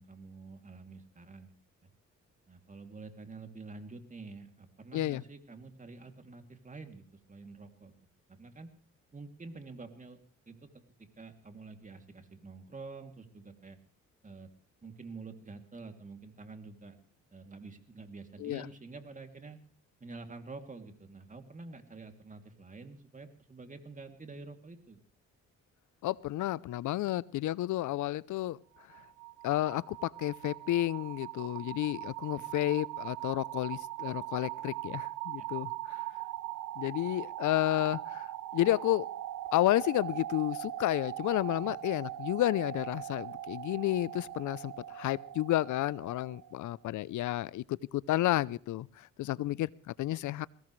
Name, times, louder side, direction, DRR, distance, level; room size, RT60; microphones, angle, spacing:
voice 1, 0.0-1.6 2.5-7.9 8.3-8.7 9.1-10.2 10.5-10.8 11.2-13.8 14.2-14.5 14.8-17.0 17.3-19.6 20.0-25.0 32.3-32.5 35.4-35.5 41.6-41.8, right 3 dB, 25° right, 6 dB, 2.8 m, -48 dB
voice 2, 26.0-28.6 29.4-36.0 36.8-39.1 39.5-50.5, left 15 dB, 75° left, 22 dB, 0.7 m, -31 dB
sound 1, 28.8-46.7, right 13 dB, 75° right, 1.1 m, -41 dB
22.0 x 18.0 x 3.2 m, 0.43 s
cardioid pair, 90°, 30 cm